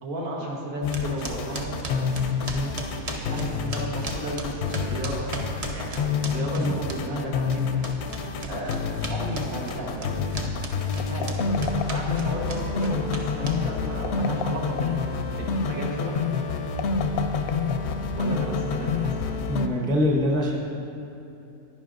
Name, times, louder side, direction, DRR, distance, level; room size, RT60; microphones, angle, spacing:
voice 1, 0.0-2.2 2.9-5.3 5.7-7.8 8.5-10.3 11.0-15.0 15.4-16.2 18.1-19.5, right 1 dB, 80° right, -3 dB, 1.8 m, -34 dB
sound 1, 0.8-19.7, left 5 dB, 65° left, 0.7 m, -28 dB
sound 2, 0.9-7.2 7.5-13.9, right 1 dB, 35° right, 0.6 m, -35 dB
sound 3, 11.0-12.4 13.9-15.1 16.7-18.2, left 9 dB, 80° left, 1.0 m, -34 dB
voice 2, 19.5-20.6, left 1 dB, 5° left, -1 dB, 0.5 m, -24 dB
11.0 x 9.9 x 2.6 m, 2.9 s
omnidirectional pair, 1.5 m